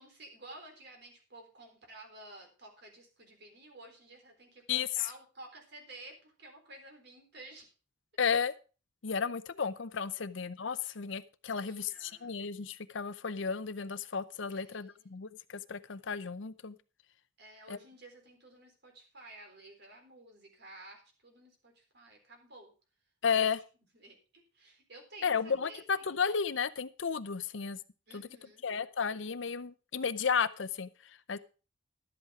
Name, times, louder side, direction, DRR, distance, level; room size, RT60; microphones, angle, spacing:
voice 1, 0.0-7.7 10.2-10.3 11.6-12.3 14.5-15.2 17.4-22.7 23.3-23.5 23.9-26.3 28.1-28.7 31.3-31.4, right 2 dB, 55° right, 3 dB, 3.9 m, -53 dB
voice 2, 8.2-8.5 9.0-16.7 17.7-17.8 23.2-23.6 25.2-27.8 28.1-28.2 28.6-30.9 31.3-31.4, left 6 dB, 65° left, 14 dB, 0.7 m, -33 dB
12.0 x 8.2 x 4.8 m, 0.34 s
head